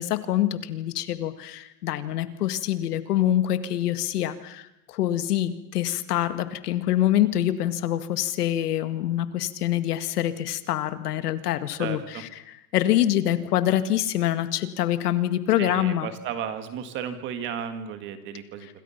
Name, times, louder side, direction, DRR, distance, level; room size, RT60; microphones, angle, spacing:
voice 1, 0.0-12.3 12.7-16.1, left 12 dB, 85° left, 11 dB, 2.0 m, -25 dB
voice 2, 11.8-12.2 15.6-18.7, right 8 dB, 25° right, 9 dB, 1.8 m, -34 dB
26.5 x 25.5 x 5.8 m, 0.83 s
supercardioid pair, 175°, 45 cm